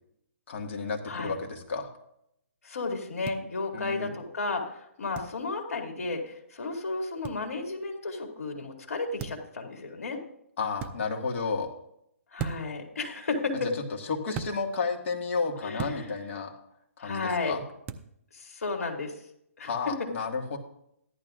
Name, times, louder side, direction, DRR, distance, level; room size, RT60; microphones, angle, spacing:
voice 1, 0.5-1.9 3.7-4.1 10.6-11.7 14.1-16.5 17.0-17.6 19.6-20.6, left 4 dB, 55° left, 2 dB, 1.9 m, -32 dB
voice 2, 2.6-10.2 12.3-13.7 15.6-16.1 17.0-17.6 18.3-19.3 19.6-19.9, left 3 dB, 75° left, 2 dB, 2.5 m, -33 dB
sound 1, 3.2-3.4 5.1-5.3 7.2-7.4 9.2-9.5 10.8-10.9 12.4-12.8 14.3-14.5 15.8-16.0 17.9-18.1, right 6 dB, 20° right, 0.5 m, -36 dB
14.5 x 11.5 x 2.5 m, 0.74 s
hypercardioid pair, 150°, 8 cm